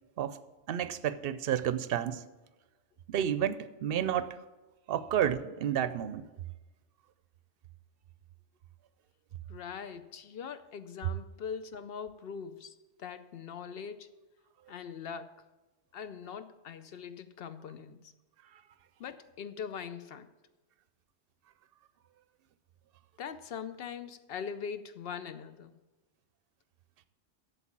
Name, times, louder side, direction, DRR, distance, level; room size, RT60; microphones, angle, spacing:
voice 1, 0.7-2.2 3.1-4.4 4.9-6.3, right 10 dB, 60° right, 0.7 m, -31 dB
voice 2, 9.5-14.2 14.7-15.4 15.9-18.1 19.0-20.3 23.2-25.8, left 7 dB, 60° left, 0.7 m, -42 dB
8.3 x 7.1 x 7.3 m
omnidirectional pair, 1.2 m